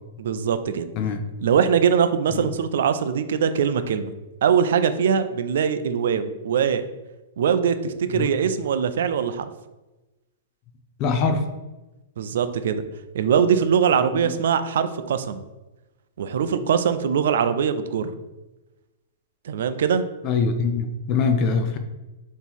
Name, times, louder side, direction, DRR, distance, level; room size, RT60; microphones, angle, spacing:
voice 1, 0.2-0.9 1.4-4.1 4.4-6.8 7.4-9.5 12.2-12.8 13.1-15.4 16.2-18.1 19.4-20.0, right 7 dB, 60° right, 10 dB, 0.4 m, -22 dB
voice 2, 1.0-1.3 2.3-2.5 8.1-8.3 11.0-11.5 14.2-14.3 20.2-21.8, left 4 dB, 25° left, 7 dB, 0.4 m, -23 dB
4.2 x 2.9 x 3.5 m, 1.1 s
supercardioid pair, 175°, 0 cm